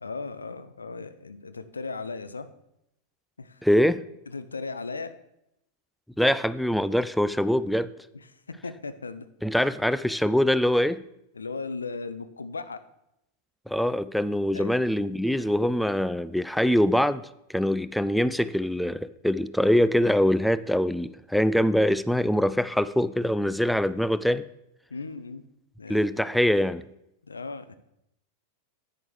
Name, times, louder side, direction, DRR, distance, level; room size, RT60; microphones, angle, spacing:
voice 1, 0.0-2.5 3.4-3.6 4.3-5.1 8.6-9.3 11.3-12.8 14.5-14.7 24.9-25.5 25.8-26.1 27.2-27.8, left 4 dB, 75° left, 11 dB, 0.6 m, -36 dB
voice 2, 3.6-4.0 6.2-7.9 9.4-11.0 13.7-17.2 17.5-24.4 25.9-26.8, equal, ahead, 15 dB, 0.3 m, -23 dB
10.5 x 8.9 x 3.2 m, 0.82 s
figure-of-eight pair, 90°, 0 cm